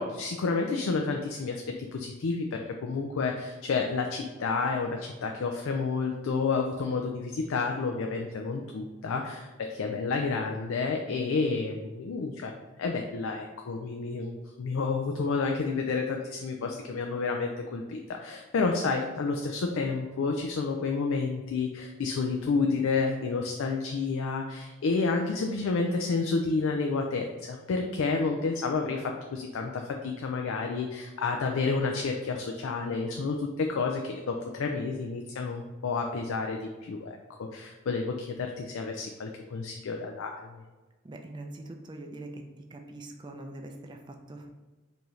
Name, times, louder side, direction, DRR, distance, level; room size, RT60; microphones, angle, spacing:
voice 1, 0.0-40.5, left 4 dB, 85° left, 3 dB, 0.4 m, -30 dB
voice 2, 41.0-42.4 42.7-44.5, right 2 dB, 20° right, 3 dB, 0.4 m, -43 dB
4.6 x 2.7 x 3.1 m, 1.2 s
head